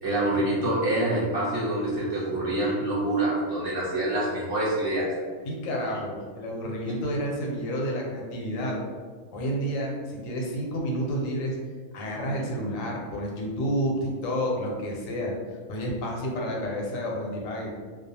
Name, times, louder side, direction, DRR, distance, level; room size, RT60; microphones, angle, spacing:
voice 1, 0.0-5.1, right 1 dB, 50° right, -8 dB, 0.8 m, -26 dB
voice 2, 5.4-8.8 9.3-11.6 11.9-15.3 15.7-17.7, equal, 90° left, -1 dB, 1.0 m, -30 dB
2.3 x 2.2 x 2.7 m, 1.5 s
omnidirectional pair, 1.4 m